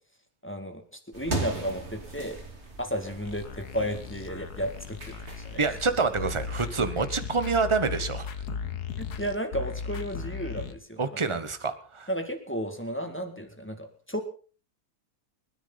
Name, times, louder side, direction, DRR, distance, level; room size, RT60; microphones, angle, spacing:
voice 1, 0.4-0.8 1.1-2.4 2.8-5.2 5.5-5.8 9.0-11.0 11.3-11.4 12.1-14.2, equal, 10° left, 5 dB, 2.1 m, -33 dB
sound 1, 1.1-6.8, right 2 dB, 45° right, 2.9 m, -39 dB
sound 2, 3.2-10.7, left 5 dB, 85° left, 1.8 m, -37 dB
voice 2, 5.6-8.3 11.0-12.1, right 4 dB, 20° right, 10 dB, 1.2 m, -27 dB
28.5 x 10.0 x 4.1 m, 0.40 s
omnidirectional pair, 1.6 m